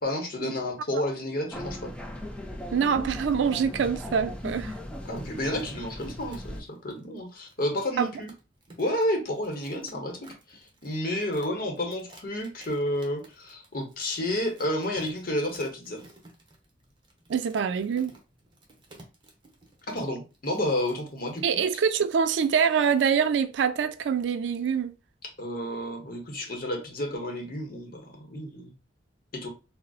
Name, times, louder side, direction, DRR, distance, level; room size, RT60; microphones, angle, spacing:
voice 1, 0.0-1.9 5.0-8.3 8.8-16.0 19.9-21.4 25.4-28.7 29.3-29.5, left 1 dB, 55° left, 0.9 m, -31 dB
sound 1, 1.5-6.6, left 1 dB, 5° left, 0.5 m, -38 dB
voice 2, 2.7-4.7 8.0-8.1 17.3-18.1 21.4-24.9, right 6 dB, 85° right, 0.4 m, -25 dB
sound 2, 5.0-23.3, right 2 dB, 25° right, 0.8 m, -53 dB
3.8 x 2.0 x 2.3 m
head